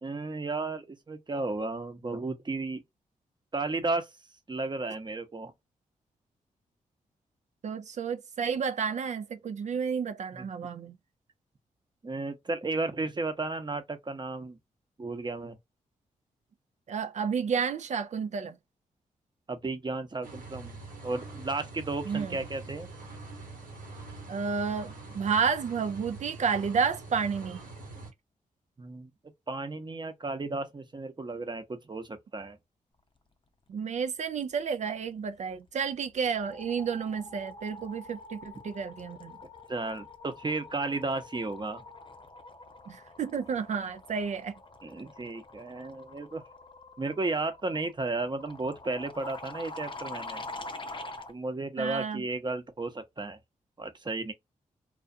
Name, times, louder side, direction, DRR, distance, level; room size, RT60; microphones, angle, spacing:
voice 1, 0.0-2.8 3.5-4.1 4.5-5.5 10.3-10.5 12.0-14.6 15.0-15.6 19.5-20.8 21.0-22.9 28.8-29.1 29.5-32.6 39.7-41.8 44.8-46.4 47.0-50.4 51.3-53.4 53.8-54.3, right 3 dB, 30° right, 0.8 m, -33 dB
voice 2, 7.6-10.9 16.9-18.6 22.1-22.4 24.3-27.6 33.7-39.4 42.9-44.5 51.8-52.2, right 6 dB, 55° right, 0.4 m, -31 dB
sound 1, 20.2-28.1, right 3 dB, 85° right, 1.1 m, -44 dB
sound 2, 35.5-35.8 36.1-51.3, left 2 dB, 35° left, 0.6 m, -45 dB
2.4 x 2.3 x 2.6 m
cardioid pair, 55°, 14 cm